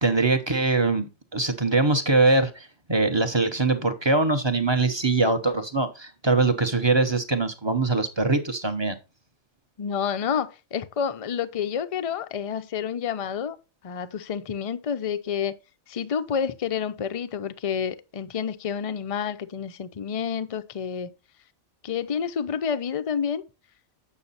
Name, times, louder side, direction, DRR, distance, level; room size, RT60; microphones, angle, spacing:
voice 1, 0.0-9.0, right 3 dB, 25° right, 0.7 m, -23 dB
voice 2, 9.8-13.6 13.8-15.6 15.9-21.1 21.8-23.4, left 7 dB, 45° left, 0.4 m, -29 dB
8.4 x 6.3 x 4.1 m
omnidirectional pair, 1.4 m